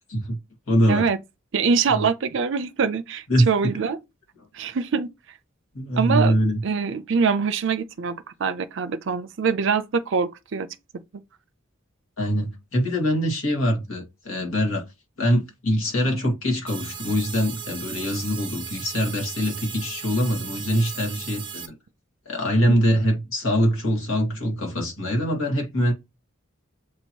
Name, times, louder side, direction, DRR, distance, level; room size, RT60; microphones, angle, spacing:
voice 1, 0.7-1.0 1.9-2.1 3.3-3.7 5.7-6.6 12.2-14.8 15.2-21.8 22.3-25.9, equal, 85° left, 2.1 m, -23 dB
voice 2, 1.5-4.0 4.5-5.4 6.0-6.4 6.6-10.7 16.1-16.2 22.6-22.8, right 5 dB, 60° right, 0.5 m, -24 dB
sound 1, 16.7-21.7, right 7 dB, 25° right, 0.8 m, -37 dB
7.4 x 3.0 x 4.4 m
head